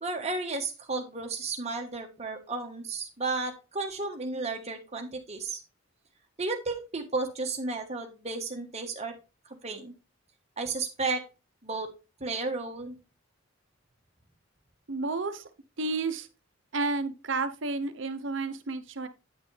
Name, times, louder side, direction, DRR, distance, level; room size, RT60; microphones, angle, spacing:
voice 1, 0.0-5.6 6.4-9.1 9.5-9.9 10.6-11.2 11.6-11.9 12.2-13.0, right 3 dB, 30° right, 3 dB, 1.4 m, -33 dB
voice 2, 14.9-15.5 15.8-16.3 16.7-19.1, right 3 dB, 65° right, 10 dB, 0.8 m, -31 dB
9.2 x 6.0 x 3.3 m, 0.30 s
head